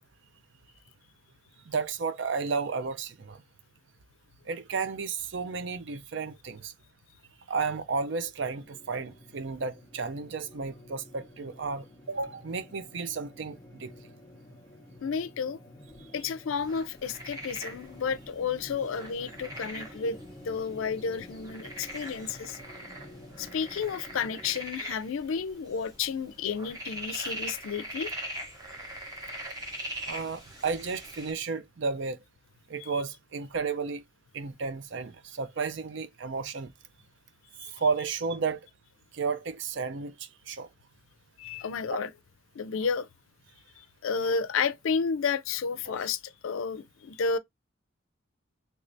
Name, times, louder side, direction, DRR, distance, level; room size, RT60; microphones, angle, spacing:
voice 1, 1.7-3.4 4.5-6.7 7.5-13.9 30.1-32.2 32.7-34.0 34.3-36.7 37.7-38.6 39.1-40.7 45.9-46.0, right 4 dB, 60° right, 0.4 m, -33 dB
sound 1, 8.6-24.6, left 1 dB, 20° left, 0.9 m, -50 dB
voice 2, 15.0-15.6 16.1-20.2 20.5-22.6 23.4-28.2 32.8-32.9 37.6-37.7 41.4-42.1 42.5-43.1 44.0-47.4, left 5 dB, 75° left, 0.4 m, -31 dB
sound 2, 16.5-31.3, right 1 dB, 20° right, 0.8 m, -42 dB
3.2 x 3.2 x 2.6 m
head